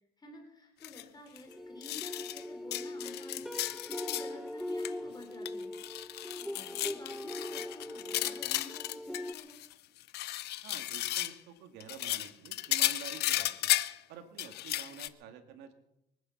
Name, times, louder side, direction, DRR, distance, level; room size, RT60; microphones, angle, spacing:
voice 1, 0.2-5.8 6.3-9.6, left 3 dB, 25° left, 2 dB, 3.9 m, -51 dB
sound 1, 0.8-1.0 1.4-1.5 1.8-2.4 2.7-4.3 4.6-4.9 5.2-9.7 10.0-11.4 11.8-14.0 14.4-15.1, left 15 dB, 75° left, 0.7 m, -34 dB
sound 2, 1.5-9.3, left 1 dB, ahead, 0.7 m, -41 dB
voice 2, 10.6-13.7 14.1-15.7, right 8 dB, 90° right, 7 dB, 2.0 m, -49 dB
24.0 x 9.5 x 5.9 m, 0.84 s
cardioid pair, 110°, 17 cm